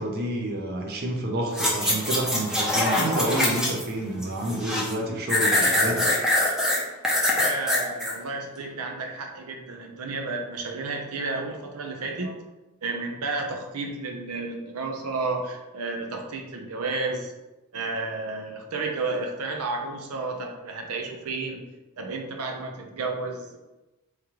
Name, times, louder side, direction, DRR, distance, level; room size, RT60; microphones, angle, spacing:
voice 1, 0.0-6.1, right 1 dB, 45° right, 1 dB, 0.6 m, -29 dB
sound 1, 1.5-3.9 4.2-4.9 5.3-8.1 8.6-8.7, left 1 dB, ahead, 0.5 m, -23 dB
voice 2, 7.3-12.4 12.8-17.3 17.7-21.6 22.0-23.6, right 3 dB, 85° right, 3 dB, 0.6 m, -32 dB
3.6 x 3.2 x 2.9 m, 1.0 s
head